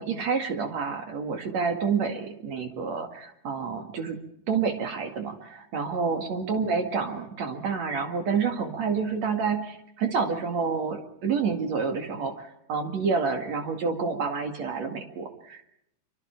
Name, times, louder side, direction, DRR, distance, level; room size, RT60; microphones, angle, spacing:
voice 1, 0.0-4.2 4.5-15.6, right 5 dB, 65° right, 4 dB, 3.3 m, -28 dB
27.0 x 25.5 x 4.6 m, 0.77 s
omnidirectional pair, 3.3 m